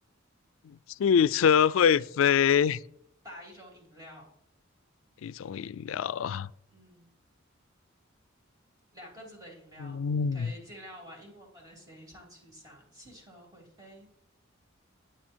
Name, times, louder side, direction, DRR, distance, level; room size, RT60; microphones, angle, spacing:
voice 1, 0.6-2.8 5.2-6.5 9.8-10.5, left 7 dB, 75° left, 0.3 m, -25 dB
voice 2, 3.2-4.3 6.7-7.1 8.9-14.1, equal, 20° right, 3.0 m, -49 dB
9.9 x 9.2 x 4.5 m
head